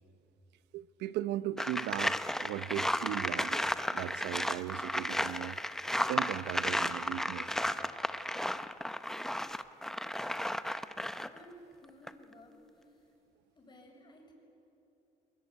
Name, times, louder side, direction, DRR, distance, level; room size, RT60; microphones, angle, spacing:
voice 1, 0.7-5.6 6.0-7.6, right 14 dB, 85° right, 0.7 m, -38 dB
sound 1, 1.6-11.4 11.9-12.1, left 1 dB, ahead, 0.7 m, -34 dB
voice 2, 11.3-13.1 13.5-14.3, equal, 25° left, 6.8 m, -56 dB
23.5 x 21.5 x 9.7 m
cardioid pair, 110°, 17 cm